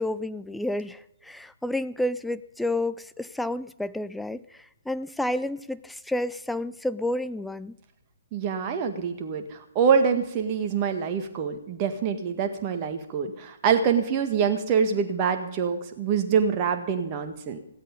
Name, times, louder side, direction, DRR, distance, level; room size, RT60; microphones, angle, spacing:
voice 1, 0.0-4.6 4.9-7.8, left 1 dB, ahead, 13 dB, 0.4 m, -30 dB
voice 2, 8.3-17.6, right 6 dB, 25° right, 6 dB, 1.8 m, -25 dB
16.5 x 12.5 x 5.3 m, 0.83 s
figure-of-eight pair, 130°, 0 cm